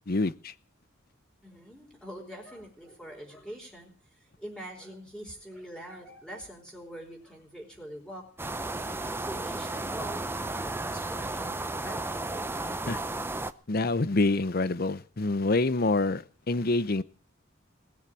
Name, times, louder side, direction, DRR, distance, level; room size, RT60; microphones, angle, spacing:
voice 1, 0.1-0.5 12.9-13.0 13.7-17.0, left 2 dB, 50° left, 16 dB, 0.8 m, -26 dB
voice 2, 1.4-8.3 8.8-12.2, equal, 5° left, 0 dB, 4.6 m, -44 dB
sound 1, 8.4-13.5, right 2 dB, 10° right, 0.7 m, -33 dB
19.5 x 7.3 x 9.3 m, 0.42 s
head